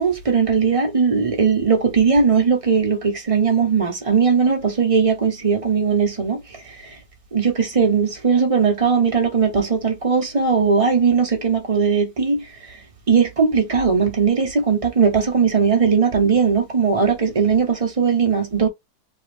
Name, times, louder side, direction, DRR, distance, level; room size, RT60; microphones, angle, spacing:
voice 1, 0.0-6.4 7.3-12.4 13.1-18.7, right 5 dB, 25° right, 1.1 m, -18 dB
3.5 x 2.4 x 3.3 m
omnidirectional pair, 1.7 m